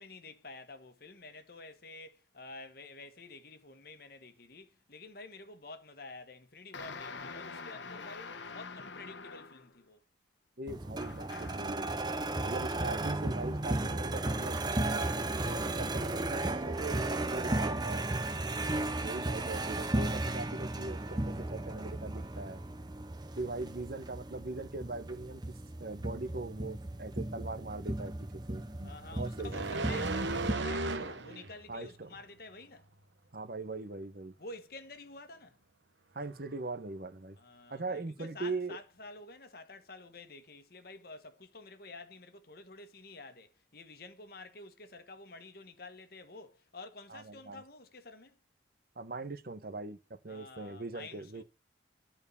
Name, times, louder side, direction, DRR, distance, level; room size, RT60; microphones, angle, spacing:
voice 1, 0.0-10.0 28.8-32.9 34.4-35.6 37.4-48.4 50.3-51.4, left 3 dB, 55° left, 1.4 m, -49 dB
sound 1, 6.7-9.8 11.0-11.8, left 4 dB, 75° left, 1.1 m, -45 dB
voice 2, 10.6-11.9 12.4-18.0 18.9-22.6 23.4-25.4 25.8-28.1 28.5-29.5 31.7-32.1 33.3-34.3 36.1-37.4 37.7-38.8 47.1-47.6 49.0-51.4, right 3 dB, 50° right, 1.0 m, -41 dB
sound 2, 10.7-30.5, right 2 dB, 20° right, 0.8 m, -35 dB
sound 3, 29.5-31.6 32.0-32.2, right 2 dB, 75° right, 1.0 m, -35 dB
11.0 x 4.7 x 6.9 m
head